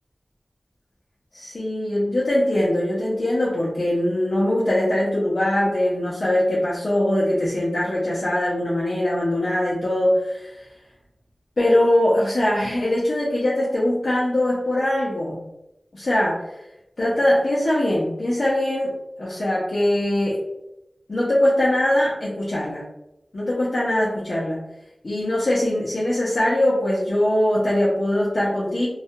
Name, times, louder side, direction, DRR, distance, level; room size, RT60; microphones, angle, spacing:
voice 1, 1.3-10.7 11.6-15.4 15.9-16.4 17.0-18.9 19.2-20.4 21.1-22.8 23.3-24.6 25.0-28.9, left 1 dB, 60° left, -7 dB, 0.5 m, -22 dB
2.3 x 2.1 x 2.7 m, 0.90 s
wide cardioid pair, 80°, 0 cm